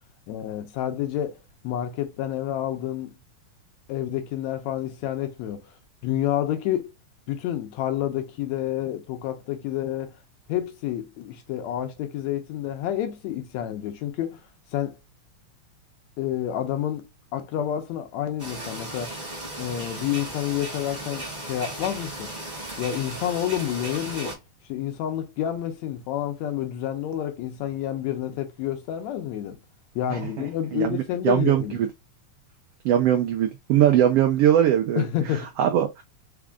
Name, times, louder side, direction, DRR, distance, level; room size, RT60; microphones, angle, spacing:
voice 1, 0.3-1.4 1.6-3.1 3.9-5.7 6.0-6.9 7.3-10.2 10.5-14.4 14.7-15.0 16.2-17.1 17.3-19.2 19.6-22.3 22.8-24.4 24.7-29.6 30.0-31.8 35.0-35.5, left 11 dB, 75° left, 1.8 m, -29 dB
sound 1, 18.4-24.4, right 1 dB, 35° right, 0.6 m, -36 dB
voice 2, 30.7-31.9 32.8-36.0, right 10 dB, 80° right, 1.4 m, -21 dB
5.0 x 2.4 x 3.5 m
omnidirectional pair, 3.4 m